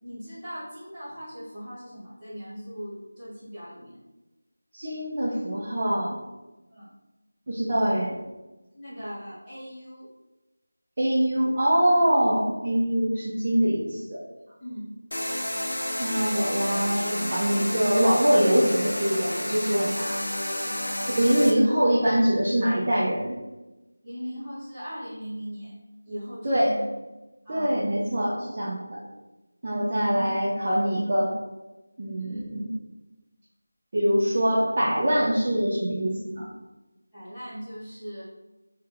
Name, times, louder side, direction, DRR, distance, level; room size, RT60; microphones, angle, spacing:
voice 1, 0.0-4.0 6.7-6.9 8.7-10.1 14.6-14.9 20.6-21.0 24.0-25.7 26.1-26.8 27.4-27.8 29.7-30.1 32.2-32.5 37.1-38.2, equal, 5° right, -19 dB, 1.0 m, -39 dB
voice 2, 4.7-6.2 7.5-8.2 11.0-14.2 16.0-20.2 21.2-23.4 26.4-26.7 27.5-29.0 29.6-31.3 32.0-32.7 33.9-36.5, equal, 30° right, -6 dB, 0.4 m, -24 dB
sound 1, 15.1-21.5, left 1 dB, 80° left, 0.7 m, -30 dB
2.7 x 2.1 x 3.7 m, 1.1 s
figure-of-eight pair, 175°, 0 cm